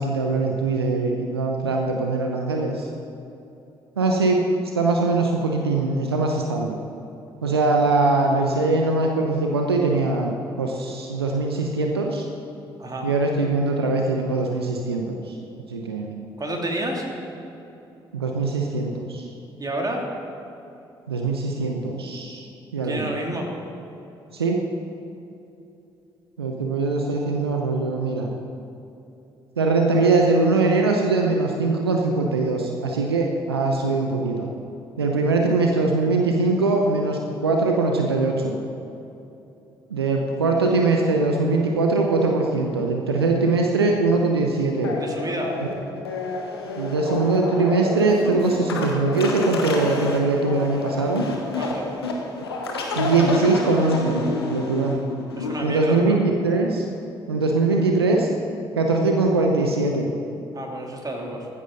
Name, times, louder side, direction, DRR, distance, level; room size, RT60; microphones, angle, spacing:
voice 1, 0.0-2.9 4.0-4.4 4.7-6.8 7.4-12.3 13.0-15.4 15.7-16.2 18.1-19.3 21.1-22.5 22.7-23.1 24.3-24.6 26.4-28.3 29.6-34.5 35.0-38.6 39.9-44.9 46.8-51.2 53.0-55.0 55.6-56.9 57.3-58.3 58.8-60.1, right 3 dB, 85° right, 2 dB, 0.8 m, -22 dB
voice 2, 16.4-17.0 19.6-20.0 22.8-23.5 45.0-45.5 51.6-51.9 55.4-56.2 60.5-61.5, right 1 dB, 30° right, 1 dB, 2.8 m, -30 dB
sound 1, 44.8-55.6, left 3 dB, 85° left, 1.1 m, -29 dB
14.5 x 13.0 x 4.0 m, 2.9 s
figure-of-eight pair, 45°, 13 cm